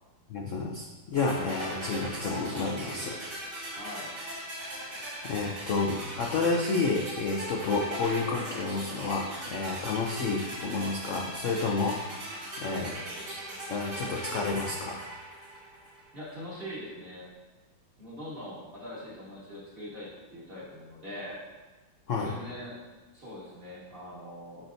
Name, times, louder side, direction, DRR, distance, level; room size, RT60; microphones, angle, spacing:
voice 1, 0.3-3.3 4.8-12.9 13.7-15.0 22.1-22.3, left 3 dB, 75° left, -1 dB, 0.7 m, -30 dB
sound 1, 1.2-16.1, right 1 dB, 60° right, 3.0 m, -39 dB
voice 2, 3.7-4.1 16.1-17.3 18.0-21.4 22.1-22.8 23.1-24.7, left 1 dB, 30° right, -7 dB, 1.6 m, -42 dB
8.5 x 5.7 x 2.6 m, 1.2 s
omnidirectional pair, 2.1 m